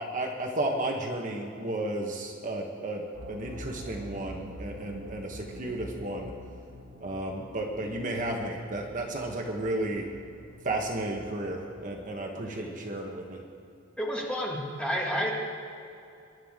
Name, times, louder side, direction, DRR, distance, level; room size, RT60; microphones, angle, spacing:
voice 1, 0.0-6.3 7.0-10.1 10.6-13.4, right 1 dB, 40° right, 1 dB, 1.4 m, -33 dB
sound 1, 3.1-13.0, equal, 75° right, 1.9 m, -47 dB
voice 2, 14.0-15.3, equal, 5° left, -3 dB, 2.1 m, -30 dB
24.5 x 11.5 x 3.8 m, 2.6 s
head